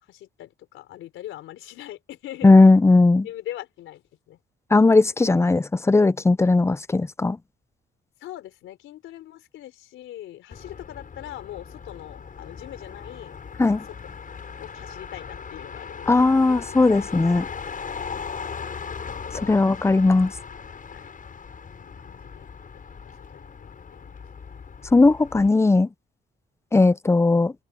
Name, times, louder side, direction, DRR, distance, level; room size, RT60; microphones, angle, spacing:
voice 1, 0.0-2.5 3.2-4.4 8.2-13.4 14.6-16.6 18.1-19.1 20.9-21.1 21.8-22.5 23.0-24.2, left 13 dB, 85° left, 4.0 m, -41 dB
voice 2, 2.4-3.3 4.7-7.4 13.6-13.8 16.1-17.5 19.4-20.3 24.9-25.9 26.7-27.5, left 3 dB, 15° left, 0.6 m, -17 dB
Motor vehicle (road), 10.5-25.5, left 6 dB, 45° left, 7.9 m, -38 dB
open air
cardioid pair, 90°, 20 cm